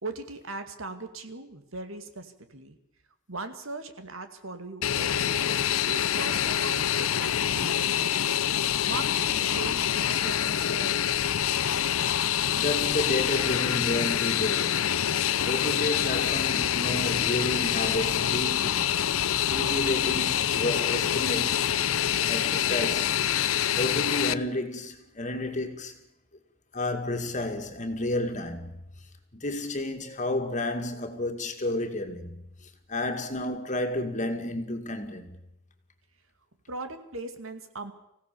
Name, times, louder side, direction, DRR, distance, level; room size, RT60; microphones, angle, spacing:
voice 1, 0.0-2.8 3.3-8.1 8.9-11.2 36.7-37.9, right 3 dB, 70° right, 2.3 m, -39 dB
Fixed-wing aircraft airplane, 4.8-24.3, left 10 dB, 80° left, 0.7 m, -26 dB
voice 2, 12.5-21.8 22.3-23.2 23.7-26.0 26.7-28.8 29.3-32.4 32.9-35.3, left 1 dB, 35° left, 2.3 m, -31 dB
25.5 x 16.5 x 6.9 m
head